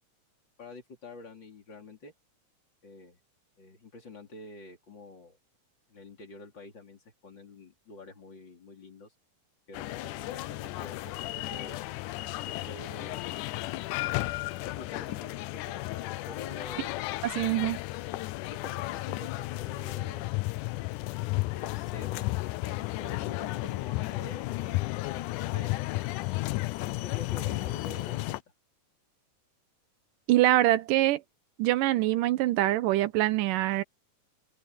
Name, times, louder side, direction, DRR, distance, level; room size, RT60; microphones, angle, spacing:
voice 1, 0.6-2.1 2.8-3.2 3.6-5.4 5.9-9.1 9.7-11.8 12.6-13.3 14.6-16.9 18.5-20.4 21.5-22.3 22.6-25.3 25.5-25.8 26.8-28.4, left 2 dB, 35° left, 4.2 m, -47 dB
sound 1, 9.7-28.4, left 19 dB, 80° left, 2.1 m, -33 dB
voice 2, 17.4-17.8 30.3-31.2 31.6-33.8, right 15 dB, 90° right, 2.5 m, -24 dB
omnidirectional pair, 3.7 m